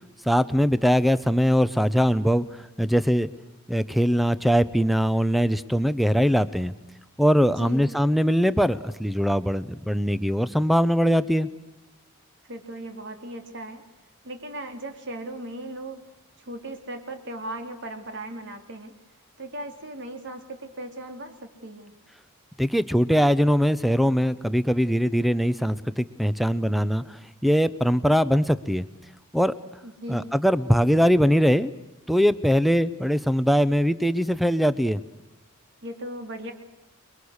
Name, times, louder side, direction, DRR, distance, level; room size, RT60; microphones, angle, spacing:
voice 1, 0.2-3.3 3.7-6.7 7.2-11.5 22.6-28.9 29.3-29.5 30.1-31.7 32.1-35.0, equal, ahead, 15 dB, 0.7 m, -21 dB
voice 2, 7.6-7.9 12.5-13.8 14.2-16.0 16.4-18.9 19.4-21.9 29.8-30.3 35.8-36.5, right 1 dB, 55° right, 6 dB, 3.1 m, -37 dB
29.5 x 22.0 x 6.5 m, 1.0 s
head